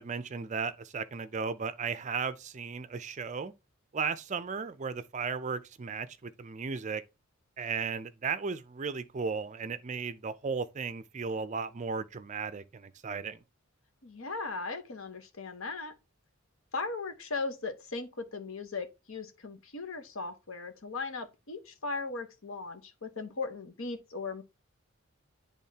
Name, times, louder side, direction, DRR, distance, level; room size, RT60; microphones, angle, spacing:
voice 1, 0.0-3.5 3.9-7.0 7.6-13.4, right 5 dB, 35° right, 0.4 m, -35 dB
voice 2, 14.0-15.9 16.7-24.4, left 3 dB, 70° left, 1.1 m, -38 dB
10.5 x 3.6 x 2.8 m
head